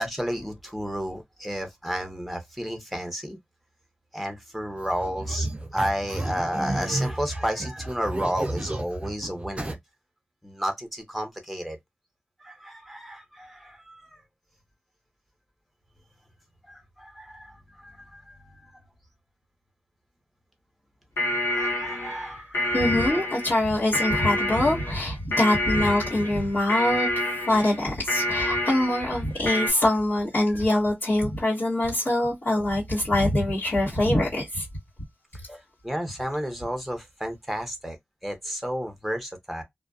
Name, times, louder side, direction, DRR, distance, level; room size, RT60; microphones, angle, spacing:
voice 1, 0.0-3.4 4.1-9.8 10.4-11.8 12.4-14.2 16.7-18.8 21.5-22.8 29.7-29.9 35.5-38.0 38.2-39.6, equal, ahead, 0.8 m, -32 dB
sound 1, 4.8-9.7, right 1 dB, 30° right, 0.5 m, -32 dB
sound 2, 21.2-29.7, left 1 dB, 90° left, 0.9 m, -28 dB
voice 2, 22.7-27.1 27.5-34.6, left 1 dB, 65° left, 1.4 m, -24 dB
2.4 x 2.2 x 2.3 m
wide cardioid pair, 55°, 4 cm